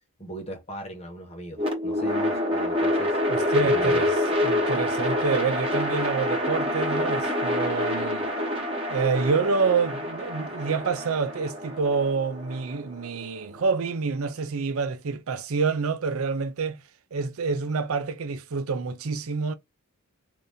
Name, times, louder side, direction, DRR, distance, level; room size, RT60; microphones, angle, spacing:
voice 1, 0.2-3.2 3.6-4.0, right 1 dB, 25° left, 1.2 m, -38 dB
sound 1, 1.6-13.7, left 1 dB, 25° right, 1.2 m, -27 dB
voice 2, 3.3-4.1 4.4-8.3 8.9-16.8 17.1-19.5, right 5 dB, 70° right, 0.5 m, -27 dB
2.7 x 2.7 x 3.5 m
head